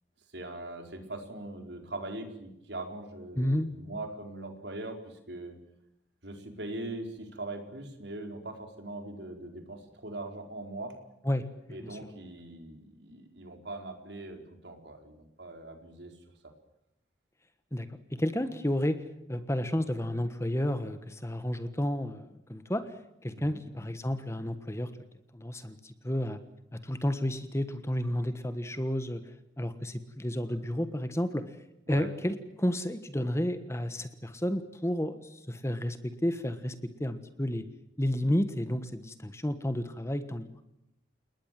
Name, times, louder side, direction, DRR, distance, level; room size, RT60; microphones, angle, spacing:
voice 1, 0.3-5.5 6.2-10.9 11.7-16.2 23.4-23.6 31.9-32.1, right 2 dB, 70° right, 5 dB, 4.6 m, -41 dB
voice 2, 3.3-3.7 11.2-12.0 17.7-19.0 19.3-24.9 25.3-26.4 26.7-31.6 31.9-37.6 38.0-40.5, left 1 dB, 15° left, 10 dB, 1.4 m, -31 dB
29.5 x 20.0 x 7.7 m, 0.84 s
head